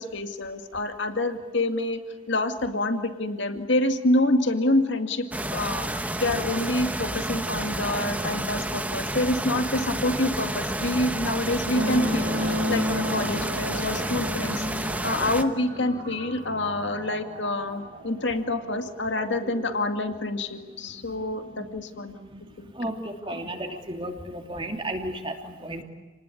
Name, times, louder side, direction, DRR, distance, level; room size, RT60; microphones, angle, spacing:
voice 1, 0.0-2.0 2.3-5.9 6.2-22.2 22.6-22.7 23.3-23.8, left 1 dB, 60° left, 7 dB, 2.3 m, -27 dB
sound 1, 5.3-15.4, right 1 dB, 5° right, 1.2 m, -30 dB
sound 2, 11.4-25.0, right 2 dB, 45° right, 3.0 m, -46 dB
sound 3, 11.7-18.8 19.7-19.8, left 1 dB, 70° right, 4.6 m, -32 dB
voice 2, 22.7-25.8, right 1 dB, 25° right, 4 dB, 2.9 m, -33 dB
29.5 x 20.0 x 9.8 m, 1.3 s
head